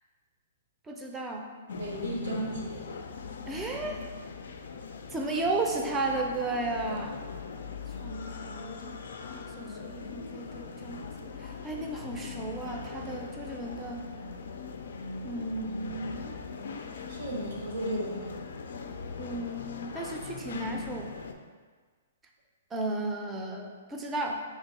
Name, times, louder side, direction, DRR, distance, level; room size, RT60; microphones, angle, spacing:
voice 1, 0.9-1.5 3.5-4.0 5.1-7.2 8.0-8.9 9.4-14.0 15.2-16.2 19.2-21.1 22.7-24.4, right 2 dB, 15° right, 1 dB, 0.5 m, -34 dB
sound 1, 1.7-21.3, left 4 dB, 75° left, 0.3 m, -41 dB
voice 2, 1.8-2.9 17.1-18.3, right 1 dB, 80° right, -3 dB, 1.2 m, -34 dB
3.1 x 2.9 x 4.2 m, 1.5 s
hypercardioid pair, 125°, 0 cm